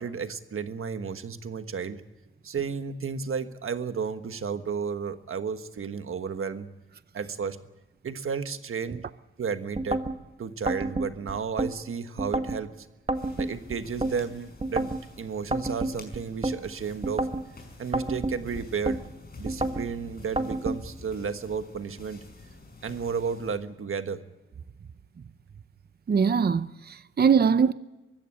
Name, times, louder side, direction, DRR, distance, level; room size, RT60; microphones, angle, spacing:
voice 1, 0.0-2.0 2.4-6.7 7.1-7.6 8.0-9.0 9.4-10.0 10.4-12.9 13.4-17.3 17.8-19.0 19.4-22.2 22.8-24.2, right 6 dB, 80° right, 1.4 m, -32 dB
sound 1, 9.8-10.2 10.7-11.7 12.2-12.6 13.1-14.1 14.6-15.0 15.5-16.6 17.0-17.5 17.9-19.0 19.5-19.9 20.4-20.8, right 2 dB, 30° right, 1.4 m, -29 dB
sound 2, 13.1-23.6, left 3 dB, 45° left, 5.5 m, -48 dB
voice 2, 26.1-27.7, right 6 dB, 50° right, 0.6 m, -22 dB
24.0 x 15.0 x 8.7 m
wide cardioid pair, 120°, 21 cm